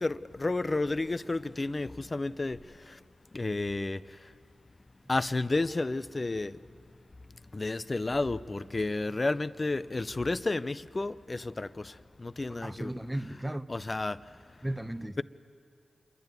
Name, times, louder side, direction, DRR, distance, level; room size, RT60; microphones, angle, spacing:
voice 1, 0.0-2.6 3.3-4.0 5.1-6.5 7.5-11.7 12.2-12.9 13.7-14.2, left 2 dB, 35° left, 0.5 m, -31 dB
voice 2, 12.5-13.6 14.6-15.2, right 1 dB, 10° right, 0.8 m, -35 dB
27.0 x 10.5 x 9.4 m
cardioid pair, 45°, 0 cm